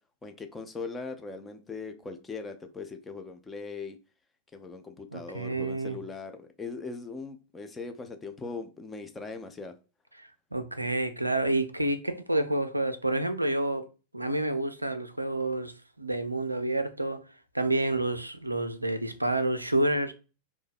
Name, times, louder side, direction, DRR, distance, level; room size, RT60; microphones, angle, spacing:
voice 1, 0.2-4.0 4.5-9.7, left 4 dB, 15° left, 0.4 m, -40 dB
voice 2, 5.1-6.0 10.5-13.8 14.1-15.7 16.0-17.2 17.5-20.1, right 2 dB, 85° right, 0.3 m, -29 dB
2.6 x 2.1 x 4.0 m
figure-of-eight pair, 90°, 0 cm